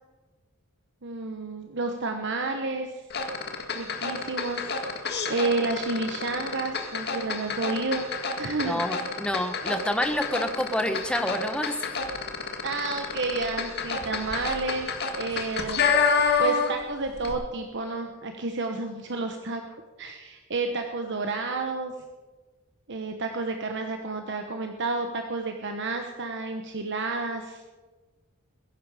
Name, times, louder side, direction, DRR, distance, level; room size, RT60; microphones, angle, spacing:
voice 1, 1.0-3.0 3.7-4.6 5.3-9.0 12.6-19.6 20.0-21.9 22.9-27.6, right 3 dB, 60° right, 4 dB, 1.1 m, -31 dB
sound 1, 3.1-16.9 17.2-17.3, left 5 dB, 50° left, 1.8 m, -28 dB
voice 2, 8.6-11.9, equal, 5° left, 7 dB, 1.1 m, -28 dB
22.0 x 10.5 x 5.0 m, 1.3 s
head